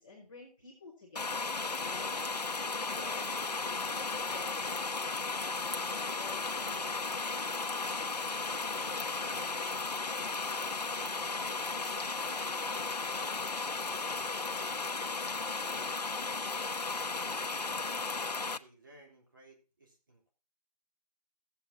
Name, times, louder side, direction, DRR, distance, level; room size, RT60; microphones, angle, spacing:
voice 1, 0.0-1.5 1.8-2.2 2.8-7.0, left 3 dB, 5° left, -12 dB, 1.1 m, -51 dB
sound 1, 1.2-18.6, left 4 dB, 75° left, 0.9 m, -35 dB
voice 2, 8.5-9.5 10.3-13.3 15.8-17.4 17.6-17.9 18.3-20.3, right 1 dB, 30° right, 1 dB, 3.5 m, -57 dB
14.5 x 8.3 x 4.0 m, 0.34 s
figure-of-eight pair, 175°, 21 cm